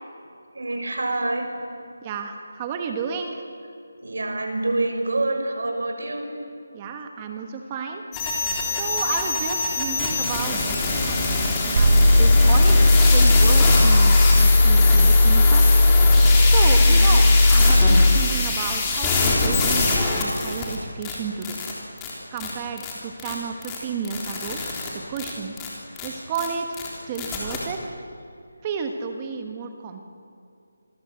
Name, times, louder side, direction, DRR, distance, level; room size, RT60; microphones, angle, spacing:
voice 1, 0.5-1.5 4.0-6.2 8.7-8.8 16.0-17.1, right 2 dB, 75° right, 3 dB, 6.2 m, -27 dB
voice 2, 2.0-3.4 6.7-8.0 8.4-15.7 16.5-21.6 22.3-24.6 24.9-25.5 26.0-26.8 27.1-27.8 28.6-30.1, right 6 dB, 20° right, 5 dB, 1.3 m, -32 dB
sound 1, 8.1-20.8 21.0-21.1 21.4-21.7 22.0-22.1 22.4-22.5 22.8-22.9 23.2-23.3 23.6-23.8 24.0-24.9 25.2-25.3 25.6-25.7 26.0-26.1 26.3-26.5 26.7-26.9 27.2-27.6, left 3 dB, 10° left, 3.5 m, -24 dB
sound 2, 11.8-18.2, left 2 dB, 55° right, 4.2 m, -15 dB
27.0 x 21.5 x 7.8 m, 2.5 s
figure-of-eight pair, 170°, 0 cm